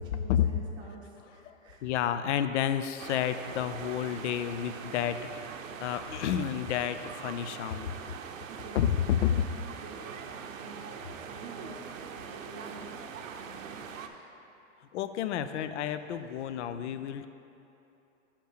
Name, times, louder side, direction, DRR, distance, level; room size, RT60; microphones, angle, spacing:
voice 1, 0.1-1.9 8.5-9.4 9.8-13.0 13.3-14.3, right 4 dB, 10° right, -2 dB, 0.5 m, -48 dB
voice 2, 1.5-7.9 8.7-9.3 14.9-17.3, left 10 dB, 65° left, 11 dB, 0.5 m, -30 dB
sound 1, 3.0-14.1, right 6 dB, 85° right, 0.7 m, -42 dB
5.4 x 5.2 x 6.5 m, 2.9 s
hypercardioid pair, 150°, 38 cm